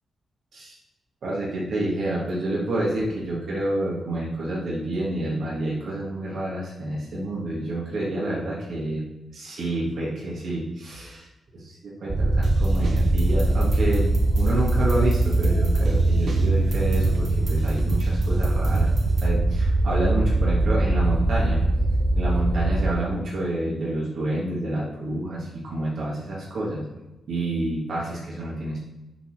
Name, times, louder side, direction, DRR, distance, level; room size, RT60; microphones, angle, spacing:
voice 1, 1.2-9.0 9.3-11.3 11.5-14.1 14.3-18.9 19.2-21.6 22.1-26.8 27.3-28.8, right 1 dB, 70° right, -5 dB, 1.7 m, -28 dB
sound 1, 12.1-22.9, right 2 dB, 25° right, 0.7 m, -22 dB
sound 2, 12.4-19.3, right 3 dB, 55° right, 0.9 m, -36 dB
7.0 x 4.0 x 6.2 m, 1.0 s
cardioid pair, 90°, 0 cm